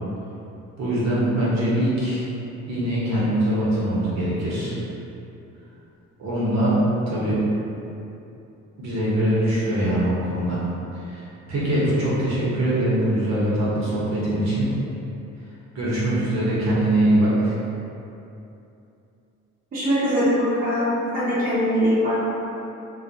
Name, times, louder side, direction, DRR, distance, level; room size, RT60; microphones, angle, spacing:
voice 1, 0.8-2.2 2.7-4.8 6.2-6.8 7.1-7.4 8.8-10.6 11.0-11.2 11.5-14.7 15.7-17.6, right 1 dB, 60° right, -8 dB, 0.9 m, -22 dB
voice 2, 19.7-22.3, equal, 30° right, -9 dB, 0.6 m, -22 dB
2.3 x 2.1 x 2.6 m, 2.8 s
cardioid pair, 90°, 30 cm